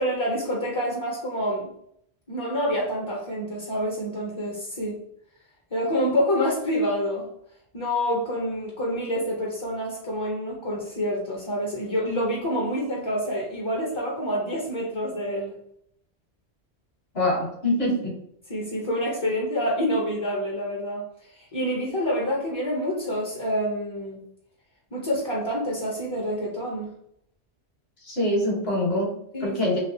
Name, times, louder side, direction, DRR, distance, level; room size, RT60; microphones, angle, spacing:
voice 1, 0.0-1.7 2.3-5.0 5.7-7.3 7.7-15.6 18.5-24.2 24.9-26.9 29.3-29.5, equal, 35° left, -2 dB, 0.5 m, -27 dB
voice 2, 17.1-18.2 28.0-29.8, left 1 dB, 65° left, -3 dB, 1.6 m, -25 dB
3.3 x 2.7 x 2.6 m, 0.72 s
omnidirectional pair, 1.2 m